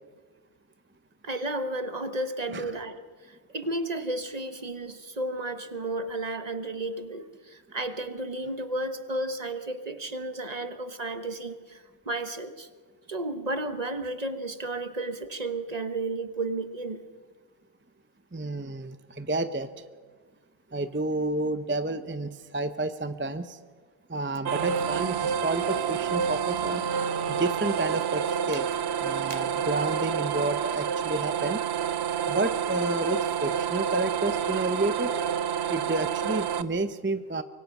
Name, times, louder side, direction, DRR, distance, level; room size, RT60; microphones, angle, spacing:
voice 1, 1.2-3.0 3.5-12.7 13.1-17.0 28.5-28.6 29.3-29.4, right 2 dB, 40° right, 9 dB, 1.3 m, -33 dB
voice 2, 18.3-19.7 20.7-23.6 24.1-26.8 27.3-28.7 29.0-31.6 32.3-35.1 35.7-37.4, right 2 dB, 15° right, 10 dB, 0.6 m, -30 dB
sound 1, 24.4-36.6, right 8 dB, 80° right, 1.1 m, -28 dB
24.5 x 23.5 x 6.0 m, 1.5 s
omnidirectional pair, 1.1 m